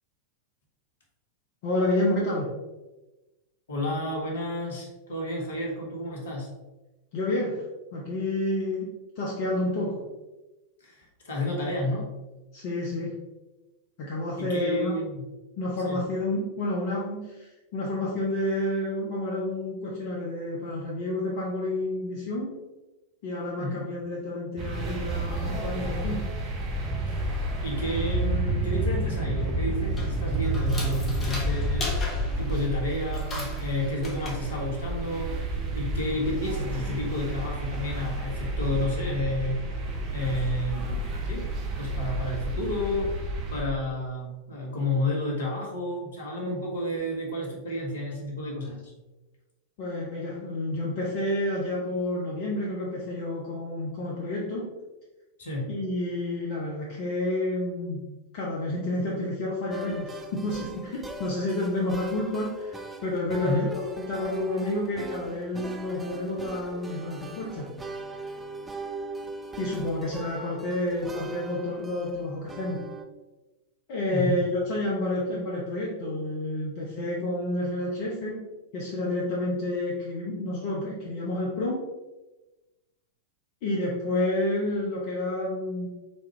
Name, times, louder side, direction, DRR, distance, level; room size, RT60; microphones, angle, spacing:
voice 1, 1.6-2.5 7.1-7.6 7.9-10.0 12.5-13.1 14.0-14.9 15.6-22.5 23.2-26.2 49.8-54.7 55.7-58.0 58.3-63.8 64.1-67.7 69.6-72.8 73.9-78.4 78.7-81.8 83.6-85.9, left 1 dB, 45° left, -4 dB, 0.9 m, -29 dB
voice 2, 3.7-6.5 10.8-12.1 14.4-15.2 15.8-16.0 23.6-23.8 27.1-27.3 27.6-31.9 32.4-35.5 35.7-39.6 40.1-41.5 41.8-43.2 43.5-48.9 55.4-55.7 63.3-63.7 74.1-74.4, left 1 dB, 65° left, -1 dB, 1.3 m, -31 dB
sound 1, 24.6-43.6, right 1 dB, 35° right, 0.9 m, -30 dB
sound 2, 29.8-35.4, left 1 dB, 20° left, 1.2 m, -38 dB
sound 3, 59.7-73.0, right 2 dB, 10° right, 0.4 m, -40 dB
4.3 x 3.7 x 3.3 m, 1.1 s
figure-of-eight pair, 90°, 0 cm